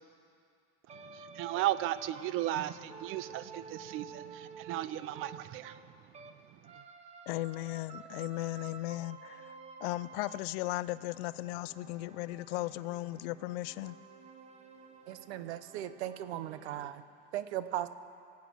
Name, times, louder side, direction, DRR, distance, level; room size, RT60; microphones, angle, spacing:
sound 1, 0.9-6.4 6.6-16.9, right 5 dB, 20° right, 0.9 m, -51 dB
voice 1, 0.9-5.8 6.5-6.7, right 14 dB, 40° right, 15 dB, 0.6 m, -35 dB
voice 2, 7.3-9.5 9.8-14.0, left 18 dB, 60° left, 17 dB, 0.5 m, -36 dB
voice 3, 15.1-17.0 17.3-17.9, right 12 dB, 75° right, 12 dB, 0.8 m, -37 dB
22.5 x 8.3 x 6.3 m, 2.4 s
supercardioid pair, 130°, 33 cm